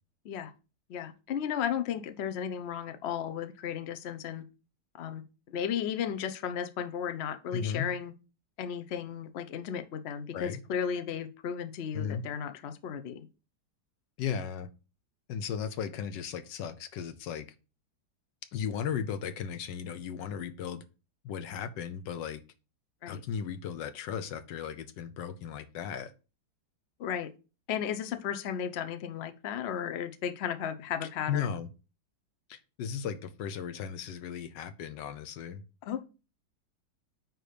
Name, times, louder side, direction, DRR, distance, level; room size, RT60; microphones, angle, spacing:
voice 1, 0.9-4.4 4.9-8.1 8.6-13.3 23.0-23.2 27.0-27.3 27.7-31.5 35.8-36.0, left 8 dB, 60° left, 9 dB, 0.7 m, -34 dB
voice 2, 7.5-7.9 10.3-10.6 11.9-12.2 14.2-14.7 15.3-17.5 18.5-20.8 21.2-22.4 23.1-26.1 31.0-31.7 32.5-35.6, left 7 dB, 80° left, 10 dB, 1.4 m, -36 dB
9.3 x 3.1 x 5.0 m, 0.32 s
omnidirectional pair, 1.9 m